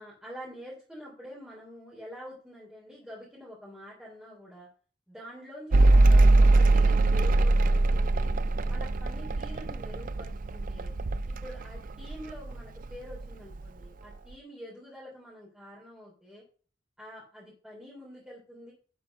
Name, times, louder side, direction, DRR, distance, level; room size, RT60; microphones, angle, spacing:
voice 1, 0.0-4.7 5.1-8.3 8.7-10.9 11.3-16.4 17.0-18.7, equal, 5° right, -6 dB, 3.1 m, -46 dB
Mechanical fan, 5.7-12.6 12.8-13.7, right 2 dB, 45° right, 0.4 m, -22 dB
11.0 x 5.1 x 5.4 m, 0.40 s
head